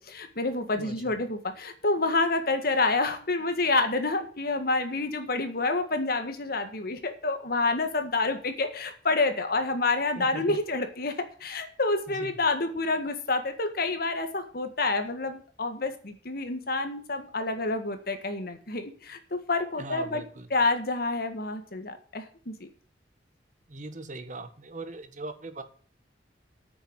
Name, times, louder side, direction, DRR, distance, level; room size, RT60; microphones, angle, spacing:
voice 1, 0.0-11.1 11.4-20.2 20.5-22.7, left 3 dB, 55° left, 8 dB, 1.7 m, -28 dB
voice 2, 0.7-1.1 10.2-10.6 12.1-12.3 19.8-20.5 23.7-25.6, right 2 dB, 45° right, 9 dB, 1.4 m, -40 dB
8.9 x 6.7 x 7.8 m, 0.43 s
head